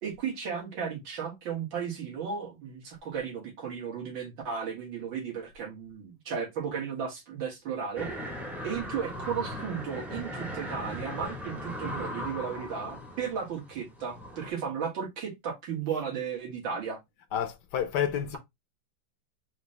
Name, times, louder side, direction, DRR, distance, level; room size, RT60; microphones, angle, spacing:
voice 1, 0.0-8.1 8.6-17.0, right 7 dB, 80° right, 2.3 m, -35 dB
sound 1, 8.0-14.5, equal, ahead, 0.5 m, -38 dB
voice 2, 17.3-18.4, left 9 dB, 70° left, 1.2 m, -30 dB
5.0 x 2.8 x 3.2 m
omnidirectional pair, 2.1 m